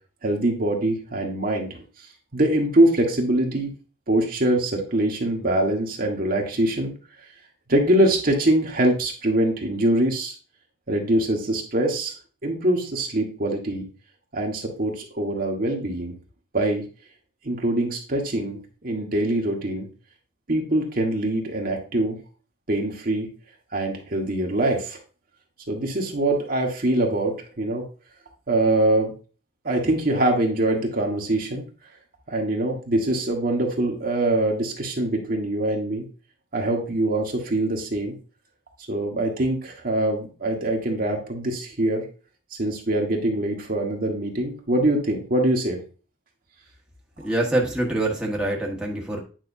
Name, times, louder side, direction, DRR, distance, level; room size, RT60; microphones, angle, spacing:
voice 1, 0.2-1.8 2.3-3.7 4.1-6.9 7.7-10.3 10.9-12.1 12.4-13.9 14.3-16.1 16.5-16.8 17.4-19.9 20.5-22.2 22.7-23.3 23.7-25.0 25.7-27.8 28.5-29.1 29.6-31.6 32.3-36.1 36.5-38.1 38.9-42.1 42.5-45.8, right 1 dB, 50° right, 1 dB, 1.5 m, -23 dB
voice 2, 47.2-49.2, right 1 dB, 5° right, -3 dB, 1.5 m, -25 dB
9.2 x 5.5 x 2.7 m, 0.35 s
head